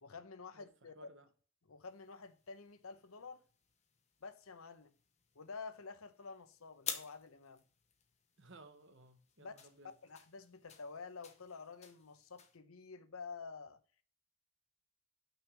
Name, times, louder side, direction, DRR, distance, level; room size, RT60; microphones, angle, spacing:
voice 1, 0.0-0.9 1.7-3.4 4.2-4.9 5.3-7.6 9.4-9.5 10.0-13.8, left 4 dB, 90° left, 0.9 m, -50 dB
voice 2, 0.5-1.3 8.4-9.9, right 1 dB, 60° right, 1.3 m, -59 dB
sound 1, 1.8-12.6, left 7 dB, 30° left, 0.9 m, -52 dB
6.1 x 5.4 x 6.3 m
head